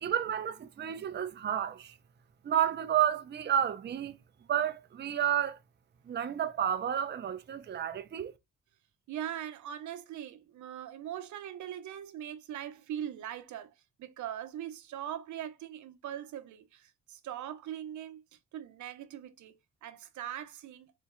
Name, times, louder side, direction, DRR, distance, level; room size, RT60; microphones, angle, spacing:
voice 1, 0.0-1.9 2.4-4.1 4.5-5.6 6.1-8.3, right 9 dB, 35° right, 0.6 m, -31 dB
voice 2, 9.1-13.7 14.0-18.2 18.5-20.9, right 10 dB, 75° right, 0.8 m, -41 dB
4.3 x 2.3 x 4.7 m
cardioid pair, 90°, 30 cm